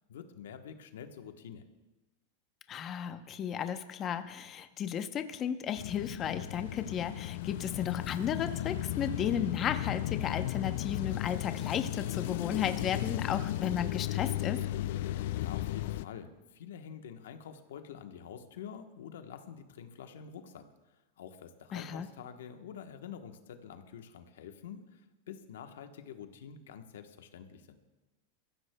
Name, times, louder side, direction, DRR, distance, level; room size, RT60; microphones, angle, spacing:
voice 1, 0.1-1.6 15.2-20.6 21.2-25.0 25.3-27.8, left 8 dB, 85° left, 7 dB, 1.1 m, -47 dB
voice 2, 2.7-14.6 21.7-22.1, left 8 dB, 30° left, 9 dB, 0.8 m, -34 dB
sound 1, 5.8-16.0, left 14 dB, 65° left, 0.4 m, -35 dB
21.5 x 15.0 x 2.3 m, 1.1 s
supercardioid pair, 140°, 0 cm